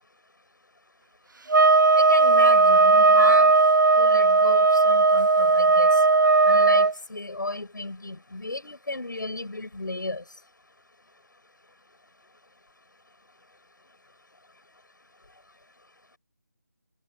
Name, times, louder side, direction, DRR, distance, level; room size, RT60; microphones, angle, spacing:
sound 1, 1.5-6.9, right 3 dB, 80° right, 0.5 m, -17 dB
voice 1, 2.0-3.5 4.0-6.0 6.5-10.2, left 2 dB, 80° left, 7.1 m, -34 dB
figure-of-eight pair, 165°, 10 cm